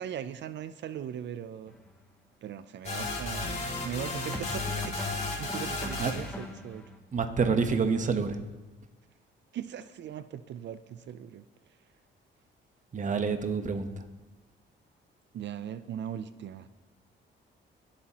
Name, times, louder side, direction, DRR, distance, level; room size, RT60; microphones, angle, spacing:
voice 1, 0.0-1.7 2.4-6.9 9.5-11.4 15.3-16.7, right 9 dB, 65° right, 13 dB, 0.6 m, -39 dB
sound 1, 1.7-1.9 4.3-7.0, left 1 dB, 5° left, 1.6 m, -42 dB
sound 2, 2.8-6.3, left 2 dB, 35° left, 2.8 m, -34 dB
voice 2, 7.1-8.4 12.9-14.0, right 5 dB, 40° right, 7 dB, 1.2 m, -28 dB
25.5 x 8.5 x 3.0 m, 1.2 s
cardioid pair, 90°, 20 cm